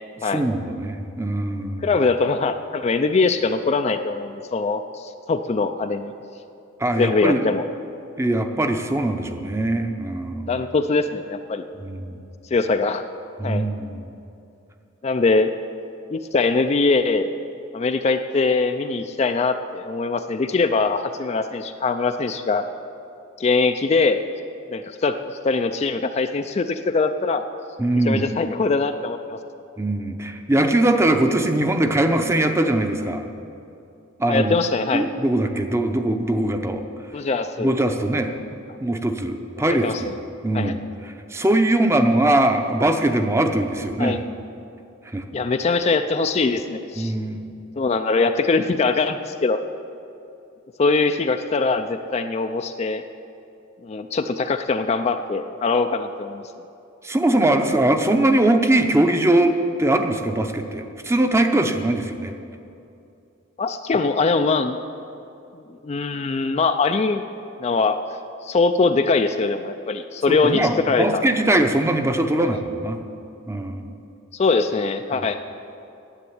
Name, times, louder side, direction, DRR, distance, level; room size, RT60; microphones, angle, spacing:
voice 1, 0.2-1.9 6.8-7.4 8.2-10.5 11.8-12.2 13.4-14.1 27.8-28.2 29.8-33.2 34.2-34.6 34.9-36.8 37.6-40.1 40.4-40.8 41.3-44.2 45.1-45.2 47.0-47.4 57.0-62.4 70.3-73.0 73.5-73.9 75.1-75.3, right 1 dB, 15° right, 6 dB, 0.6 m, -21 dB
voice 2, 1.8-6.1 7.0-7.6 10.5-11.6 12.5-13.0 13.4-13.7 15.0-15.5 16.1-17.3 17.7-22.7 23.4-24.2 24.7-27.5 27.9-29.4 34.3-35.1 37.1-37.7 39.7-40.1 40.5-40.8 44.0-44.2 45.3-47.1 47.8-49.6 50.8-53.0 53.8-56.5 63.6-64.8 65.8-67.2 67.6-68.0 68.4-71.2 72.4-72.6 74.3-75.4, left 4 dB, 30° left, 8 dB, 0.3 m, -22 dB
9.9 x 7.9 x 9.3 m, 2.7 s
head